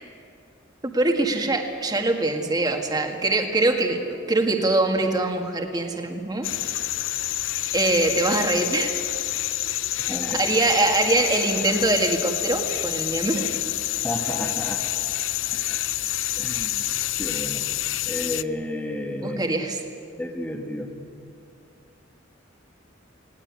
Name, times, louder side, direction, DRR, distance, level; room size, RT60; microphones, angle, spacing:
voice 1, 0.9-6.8 7.7-8.9 10.3-13.5 19.2-19.8, right 2 dB, 20° right, 3 dB, 1.8 m, -23 dB
sound 1, 6.4-18.4, left 14 dB, 80° left, 0.5 m, -28 dB
voice 2, 10.0-10.5 14.0-14.8 15.5-15.9 16.4-17.7 18.0-19.5 20.2-20.9, left 1 dB, 10° left, 2 dB, 1.6 m, -32 dB
19.5 x 18.0 x 9.6 m, 2.5 s
head